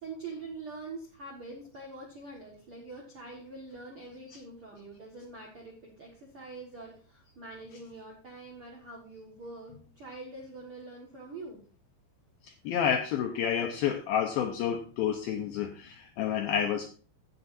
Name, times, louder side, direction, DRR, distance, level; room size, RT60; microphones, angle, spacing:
voice 1, 0.0-11.6, right 3 dB, 60° right, -2 dB, 1.4 m, -44 dB
voice 2, 12.4-16.9, left 8 dB, 80° left, 4 dB, 2.2 m, -29 dB
16.0 x 6.8 x 2.6 m, 0.38 s
omnidirectional pair, 5.2 m